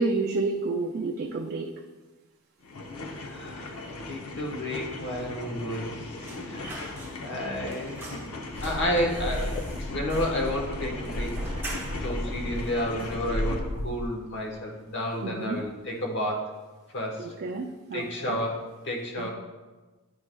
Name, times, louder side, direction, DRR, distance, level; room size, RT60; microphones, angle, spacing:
voice 1, 0.0-1.7 15.2-15.6 17.2-18.4 19.2-19.3, right 3 dB, 50° right, 1 dB, 0.4 m, -30 dB
sound 1, 2.6-13.6, left 2 dB, 80° left, 0.7 m, -38 dB
voice 2, 3.1-3.7 4.1-8.0 8.6-11.4 12.0-16.5 16.9-17.3 17.9-19.3, equal, 55° left, 0 dB, 1.1 m, -31 dB
sound 2, 6.2-7.4 7.7-12.2 12.6-12.7 13.0-13.8 14.1-14.3 14.7-15.3 15.6-15.8, right 2 dB, 10° right, 0.8 m, -43 dB
sound 3, 8.5-14.1, left 1 dB, 35° left, 0.4 m, -34 dB
9.6 x 4.6 x 2.2 m, 1.2 s
head